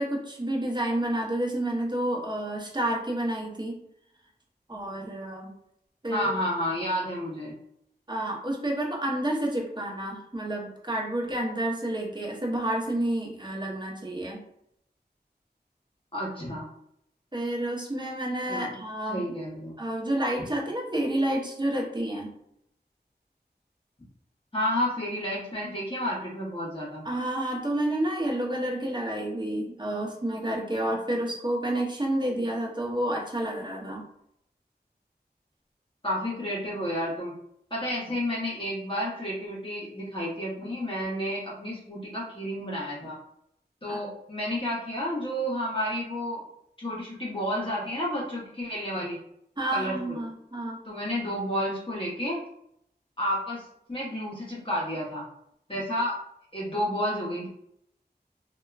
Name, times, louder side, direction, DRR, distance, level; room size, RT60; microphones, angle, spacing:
voice 1, 0.0-3.7 4.7-5.5 6.0-6.3 8.1-14.4 17.3-19.2 19.8-22.3 27.0-34.0 43.9-44.0 49.6-50.8, right 1 dB, 25° right, -1 dB, 0.7 m, -29 dB
voice 2, 6.1-7.5 16.1-16.7 18.5-18.8 19.1-19.8 24.5-27.0 36.0-37.3 37.7-43.2 43.8-46.5 46.8-49.2 49.7-50.2 50.9-52.4 53.2-55.3 55.7-56.2 56.5-57.5, equal, 30° left, -6 dB, 0.7 m, -31 dB
2.8 x 2.2 x 2.3 m, 0.74 s
wide cardioid pair, 40°, 18 cm